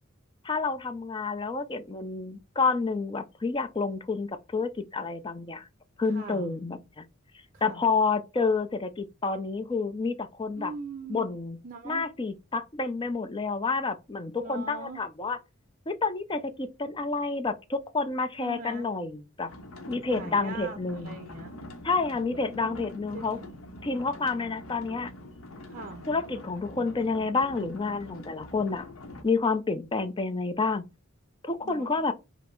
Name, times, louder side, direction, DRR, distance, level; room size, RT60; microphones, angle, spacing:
voice 1, 0.4-5.7 6.0-7.0 7.6-10.7 11.1-11.6 11.8-15.4 15.9-19.5 19.9-21.2 21.8-23.4 23.8-25.1 26.1-28.8 29.2-30.8 31.4-32.1, left 4 dB, 25° left, 0.5 m, -29 dB
voice 2, 6.1-6.5 7.5-7.8 10.5-11.4 11.6-12.1 14.4-15.0 18.4-18.9 20.1-20.8 21.0-21.7 22.2-23.5 25.7-26.0 31.6-32.0, right 3 dB, 40° right, 0.6 m, -41 dB
sound 1, 19.5-29.2, left 1 dB, 80° left, 0.7 m, -45 dB
5.1 x 2.0 x 4.4 m
head